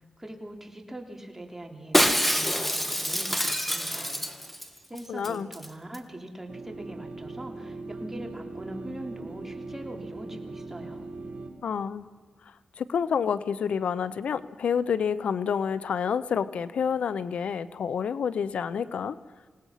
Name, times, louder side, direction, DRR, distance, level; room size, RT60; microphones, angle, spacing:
voice 1, 0.2-4.2 4.9-11.0, right 1 dB, 15° right, 2 dB, 3.3 m, -42 dB
Shatter, 1.9-4.7 5.0-5.1 5.2-5.7 5.9-6.0, equal, 5° left, 1.6 m, -26 dB
voice 2, 5.1-5.5 11.6-12.1 12.8-19.2, left 7 dB, 80° left, 16 dB, 0.7 m, -28 dB
sound 1, 6.5-11.5, right 3 dB, 70° right, 3.9 m, -40 dB
26.5 x 18.5 x 5.7 m, 1.4 s
cardioid pair, 65°, 2 cm